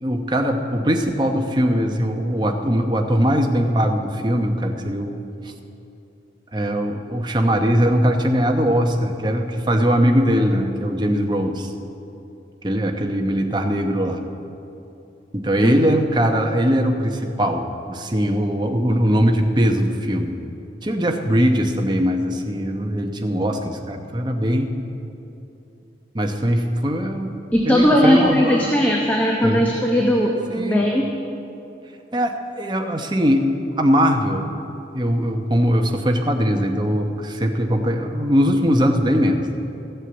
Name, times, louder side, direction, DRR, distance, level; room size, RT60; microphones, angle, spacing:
voice 1, 0.0-5.2 6.5-11.7 12.6-14.2 15.3-20.3 20.8-24.7 26.1-27.3 27.6-28.8 29.4-29.7 30.5-30.8 32.1-33.4 33.8-34.5 34.9-39.5, equal, 25° right, 4 dB, 0.9 m, -20 dB
voice 2, 27.5-31.1, equal, 10° left, -1 dB, 0.9 m, -18 dB
14.0 x 8.1 x 8.0 m, 2.8 s
head